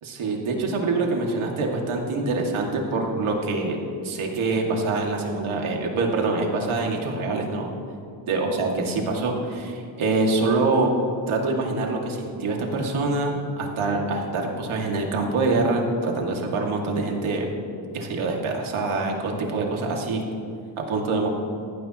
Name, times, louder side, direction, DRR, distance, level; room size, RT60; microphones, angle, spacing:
voice 1, 0.0-3.8 4.0-7.7 8.3-10.9 11.3-17.5 17.9-20.2 20.9-21.3, right 3 dB, 85° right, 0 dB, 2.4 m, -25 dB
19.0 x 14.5 x 3.0 m, 2.6 s
wide cardioid pair, 140°, 47 cm